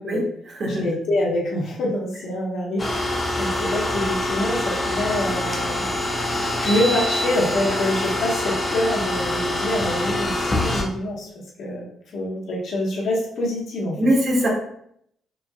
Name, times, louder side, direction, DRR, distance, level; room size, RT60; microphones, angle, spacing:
voice 1, 0.1-0.8 14.0-14.5, equal, 45° right, -1 dB, 1.4 m, -22 dB
voice 2, 0.7-5.8 6.6-11.3 11.6-14.0, left 1 dB, 70° left, -3 dB, 1.3 m, -26 dB
sound 1, 2.8-10.8, left 1 dB, 25° left, 1.1 m, -25 dB
5.0 x 3.3 x 2.4 m, 0.70 s
cardioid pair, 90°, 0 cm